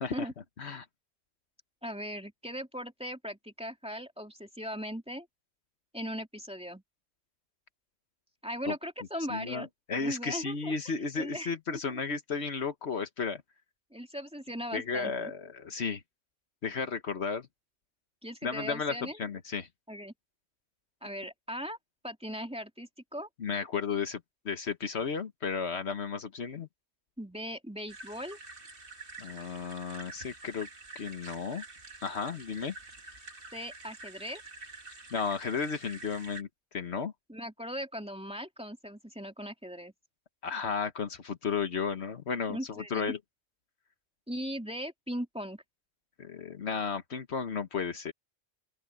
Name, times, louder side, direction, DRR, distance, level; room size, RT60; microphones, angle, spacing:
voice 1, 1.8-5.3 5.9-6.8 8.4-9.7 10.0-10.7 11.2-11.8 13.9-15.3 18.2-19.2 19.9-20.1 21.0-21.8 22.0-23.3 27.2-28.4 33.5-34.4 37.3-39.9 42.5-43.1 44.3-45.6, equal, 5° right, 2.8 m, -39 dB
voice 2, 9.3-13.4 14.7-16.0 16.6-17.5 18.4-19.7 23.4-26.7 29.2-30.7 30.9-31.6 32.0-32.7 35.1-37.1 40.4-43.2 46.2-48.1, left 5 dB, 70° left, 1.5 m, -34 dB
sound 1, 27.9-36.4, right 3 dB, 55° right, 2.4 m, -47 dB
open air
omnidirectional pair, 1.2 m